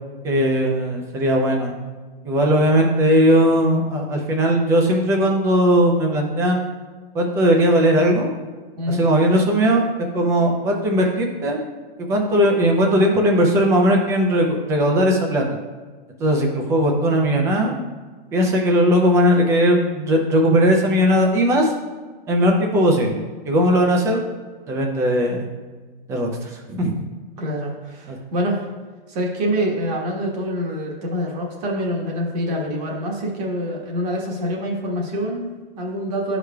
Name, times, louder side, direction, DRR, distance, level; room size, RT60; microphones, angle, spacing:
voice 1, 0.2-1.7 2.2-6.6 7.1-8.3 8.9-9.8 10.1-11.6 12.0-15.4 16.2-17.8 18.3-21.7 22.3-24.2 24.7-25.5 26.1-27.0 28.1-28.2, equal, 10° right, 2 dB, 0.5 m, -18 dB
voice 2, 27.4-28.6 29.1-36.4, equal, 45° right, -1 dB, 1.4 m, -25 dB
10.5 x 4.9 x 2.3 m, 1.4 s
hypercardioid pair, 155°, 29 cm